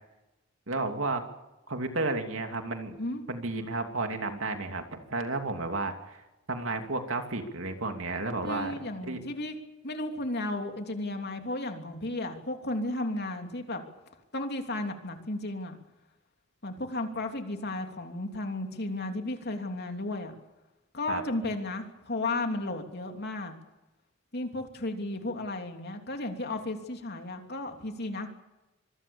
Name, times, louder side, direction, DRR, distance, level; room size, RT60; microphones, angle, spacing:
voice 1, 0.7-1.2 1.7-3.0 3.3-6.2 6.5-8.7 9.0-9.2 21.1-21.2, right 3 dB, 80° right, 5 dB, 2.9 m, -32 dB
voice 2, 8.4-9.5 9.8-13.8 14.3-15.8 16.6-20.3 20.9-23.5 24.3-28.3, left 2 dB, 55° left, 4 dB, 3.1 m, -34 dB
26.0 x 21.5 x 7.2 m, 1.0 s
head